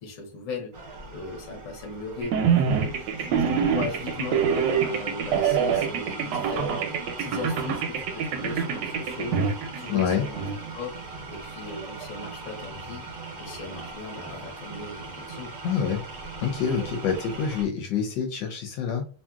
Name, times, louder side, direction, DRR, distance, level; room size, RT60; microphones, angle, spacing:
voice 1, 0.0-0.8 1.1-4.4 4.8-6.9 7.2-9.4 9.8-10.4 10.7-11.0 11.3-13.1 13.4-15.5, left 4 dB, 55° left, 1 dB, 1.0 m, -37 dB
sound 1, 0.7-17.6, right 3 dB, 55° right, 0.8 m, -40 dB
sound 2, 2.2-10.6, right 7 dB, 75° right, 1.1 m, -25 dB
voice 2, 9.9-10.2 15.6-16.0 16.4-19.1, left 7 dB, 75° left, 2 dB, 1.2 m, -26 dB
2.9 x 2.7 x 2.3 m, 0.38 s
omnidirectional pair, 2.2 m